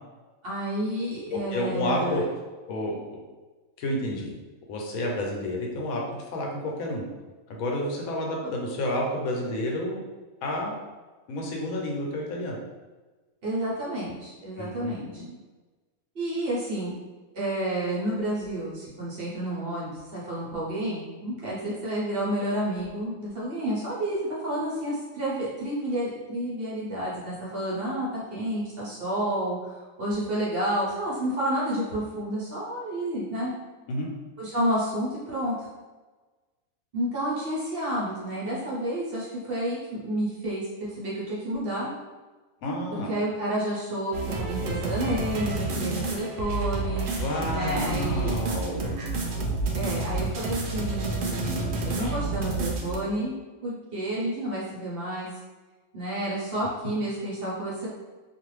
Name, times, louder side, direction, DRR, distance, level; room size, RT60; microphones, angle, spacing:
voice 1, 0.4-2.2 13.4-15.2 16.1-16.9 17.3-24.2 24.4-33.5 34.4-35.7 36.9-40.7 41.0-41.9 42.9-47.1 47.5-48.3 49.7-53.3 53.6-55.3 55.9-57.9, right 1 dB, 50° right, -7 dB, 0.9 m, -30 dB
voice 2, 1.3-2.2 2.7-3.2 3.8-4.3 4.7-7.0 7.5-10.0 10.4-10.7 11.3-12.6 14.6-15.3 33.9-34.1 42.6-43.1 47.2-49.0, left 1 dB, 85° left, -1 dB, 1.1 m, -30 dB
sound 1, 44.1-53.0, right 2 dB, 85° right, 0.4 m, -29 dB
2.5 x 2.4 x 3.1 m, 1.3 s
omnidirectional pair, 1.5 m